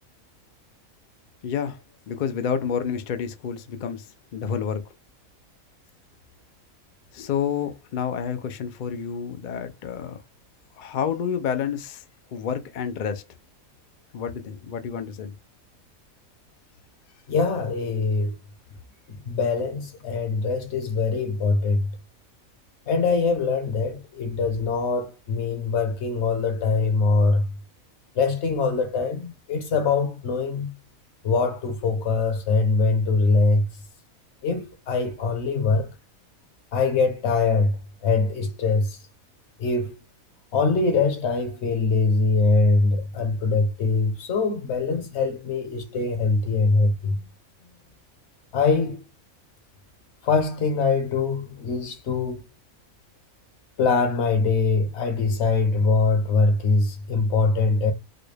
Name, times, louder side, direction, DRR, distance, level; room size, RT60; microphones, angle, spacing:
voice 1, 1.4-4.9 7.1-10.2 10.8-12.0 12.3-13.2 14.1-15.3, left 7 dB, 80° left, 0.4 m, -29 dB
voice 2, 17.3-18.3 19.1-21.9 22.9-27.5 28.2-30.7 31.2-33.7 34.4-35.9 36.7-39.0 39.6-40.0 40.5-47.2 48.5-49.0 50.2-52.4 53.8-57.9, left 4 dB, 55° left, 1.0 m, -23 dB
4.1 x 2.2 x 3.2 m
omnidirectional pair, 1.5 m